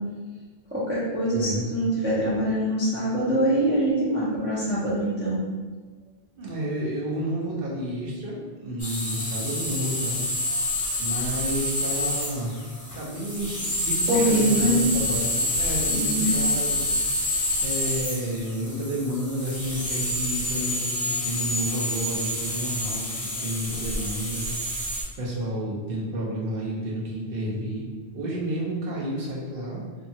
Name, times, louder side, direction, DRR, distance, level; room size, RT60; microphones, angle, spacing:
voice 1, 0.7-5.4 14.1-14.8 15.9-16.3, right 1 dB, 15° right, -8 dB, 0.4 m, -24 dB
voice 2, 1.3-1.6 6.4-10.2 11.0-27.9 28.1-29.8, right 1 dB, 60° right, -4 dB, 0.9 m, -31 dB
sound 1, 8.8-25.0, left 1 dB, 20° left, 0.7 m, -28 dB
2.7 x 2.3 x 2.7 m, 1.4 s
omnidirectional pair, 1.1 m